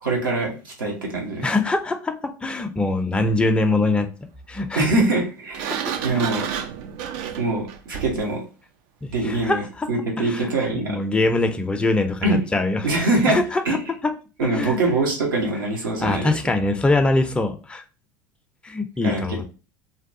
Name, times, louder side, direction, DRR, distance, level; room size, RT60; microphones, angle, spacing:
voice 1, 0.0-1.5 4.7-5.7 6.0-6.5 7.4-8.4 9.1-11.0 12.2-12.4 12.8-13.4 13.6-13.8 14.4-16.3 19.0-19.5, right 2 dB, 85° right, 0 dB, 0.8 m, -23 dB
voice 2, 1.4-4.1 4.5-4.9 6.1-6.2 9.0-9.9 10.2-12.8 13.3-13.8 14.0-14.1 14.4-14.8 16.0-17.8 18.6-19.5, left 2 dB, 10° left, 6 dB, 0.4 m, -23 dB
Sliding door, 5.5-8.3, right 8 dB, 65° right, 0.4 m, -30 dB
2.6 x 2.2 x 2.5 m, 0.34 s
hypercardioid pair, 75°, 11 cm